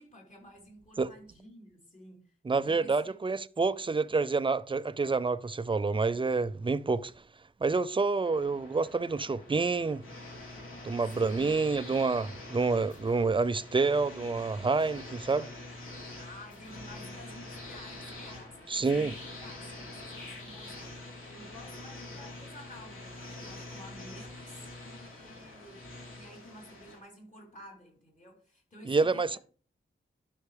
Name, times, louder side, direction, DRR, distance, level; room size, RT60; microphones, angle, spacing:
voice 1, 0.0-3.2 11.1-11.5 16.2-29.4, equal, 40° left, 4.0 m, -51 dB
voice 2, 2.4-7.1 7.6-10.0 10.8-15.5 18.7-19.1 28.9-29.4, right 4 dB, 25° right, 0.4 m, -28 dB
sound 1, 8.2-27.0, left 2 dB, 85° left, 3.3 m, -45 dB
sound 2, 11.1-11.6 12.9-13.4 14.8-15.3 16.5-17.0, equal, 65° left, 2.7 m, -55 dB
11.5 x 5.6 x 3.4 m
wide cardioid pair, 115°, 21 cm